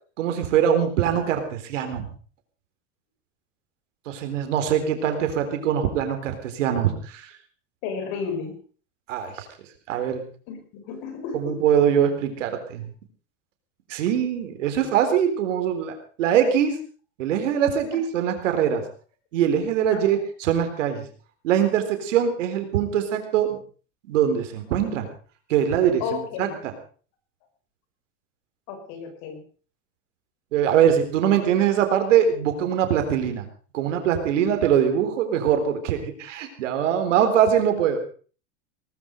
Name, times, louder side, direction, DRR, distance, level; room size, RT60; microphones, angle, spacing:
voice 1, 0.2-2.1 4.1-7.3 9.1-9.5 9.9-10.2 11.3-12.9 13.9-16.8 17.2-18.8 19.3-21.0 21.4-23.6 24.1-25.1 25.5-26.7 30.5-33.5 33.7-38.0, right 9 dB, 90° right, 6 dB, 4.1 m, -22 dB
voice 2, 7.8-8.6 10.5-11.6 14.8-14.9 17.9-18.0 19.9-20.2 26.0-26.6 28.7-29.4, left 5 dB, 60° left, 7 dB, 5.7 m, -33 dB
19.0 x 13.5 x 5.2 m, 0.41 s
supercardioid pair, 130°, 36 cm